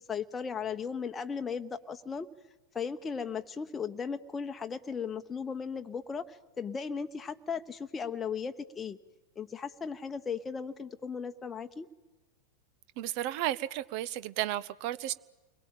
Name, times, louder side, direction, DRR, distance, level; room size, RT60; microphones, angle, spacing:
voice 1, 0.0-2.3 2.7-9.0 9.4-11.9, left 6 dB, 15° left, 1.0 m, -36 dB
voice 2, 13.0-15.1, right 13 dB, 45° right, 0.9 m, -33 dB
30.0 x 22.0 x 9.0 m
figure-of-eight pair, 90°, 0 cm